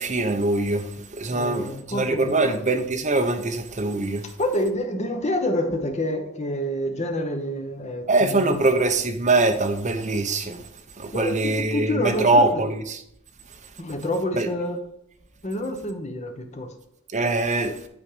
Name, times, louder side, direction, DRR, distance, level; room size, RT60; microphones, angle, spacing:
voice 1, 0.0-4.2 8.1-10.6 11.0-13.0 14.3-14.5 17.1-17.7, right 2 dB, 35° right, 0.8 m, -23 dB
voice 2, 1.3-2.6 4.4-8.6 11.1-12.6 13.8-14.8 15.4-16.7, left 1 dB, 35° left, 1.1 m, -28 dB
8.8 x 4.1 x 5.0 m
head